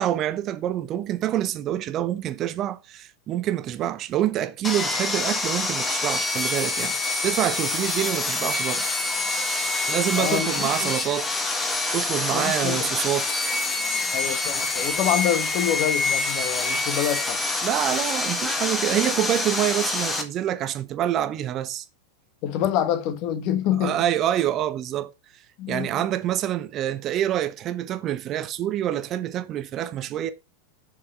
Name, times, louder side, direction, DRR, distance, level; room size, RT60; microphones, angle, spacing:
voice 1, 0.0-7.0 7.2-8.9 9.9-11.3 11.9-13.3 17.6-21.8 23.8-25.1 25.7-30.3, right 12 dB, 35° right, 0.7 m, -26 dB
Sawing, 4.6-20.2, left 3 dB, 15° left, 1.4 m, -26 dB
voice 2, 10.1-10.9 12.3-12.9 14.1-17.4 22.4-23.9 25.6-26.0, left 10 dB, 40° left, 1.3 m, -26 dB
7.0 x 4.9 x 5.6 m
figure-of-eight pair, 90°, 0 cm